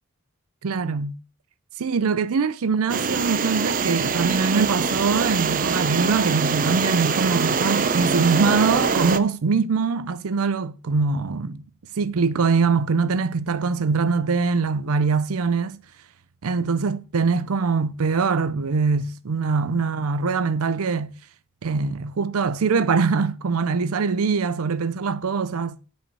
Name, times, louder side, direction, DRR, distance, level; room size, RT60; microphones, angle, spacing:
voice 1, 0.6-1.2 1.8-11.6 12.0-15.8 16.4-21.1 21.6-25.8, right 5 dB, 90° right, 0.5 m, -23 dB
sound 1, 2.9-9.2, right 5 dB, 40° right, 0.5 m, -23 dB
8.9 x 5.4 x 6.7 m
head